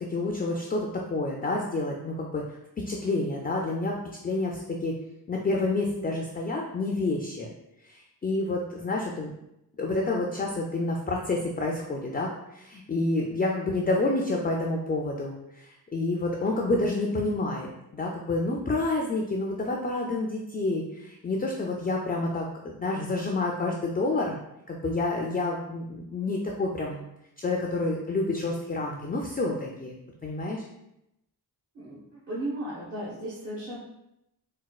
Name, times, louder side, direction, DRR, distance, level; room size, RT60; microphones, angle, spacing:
voice 1, 0.0-2.4 2.9-4.0 4.2-4.9 5.3-7.5 7.8-9.3 9.8-17.7 17.9-24.4 24.7-27.0 27.4-30.0 30.2-30.6, left 2 dB, 25° left, -1 dB, 0.3 m, -29 dB
voice 2, 31.7-33.8, right 1 dB, 40° right, -7 dB, 0.9 m, -35 dB
4.2 x 2.2 x 2.3 m, 0.84 s
wide cardioid pair, 105°, 40 cm